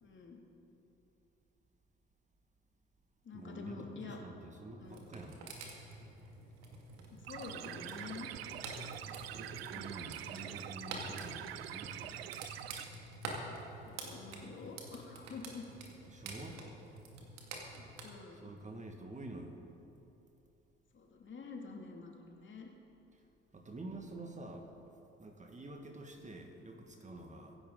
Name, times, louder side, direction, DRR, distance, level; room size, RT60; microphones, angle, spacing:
voice 1, 0.0-0.4 3.2-4.2 4.7-5.1 7.1-8.3 9.7-10.0 13.8-15.7 17.5-18.5 20.9-22.7, left 4 dB, 40° left, 0 dB, 2.5 m, -48 dB
voice 2, 3.3-5.4 9.3-12.3 16.1-16.6 18.4-19.6 23.5-24.7 25.2-27.6, right 2 dB, 25° right, 3 dB, 1.9 m, -48 dB
sound 1, 4.8-18.0, right 3 dB, 65° right, 2.3 m, -48 dB
sound 2, 7.3-12.8, right 12 dB, 80° right, 0.5 m, -45 dB
24.0 x 11.0 x 3.9 m, 2.8 s
figure-of-eight pair, 50°, 30 cm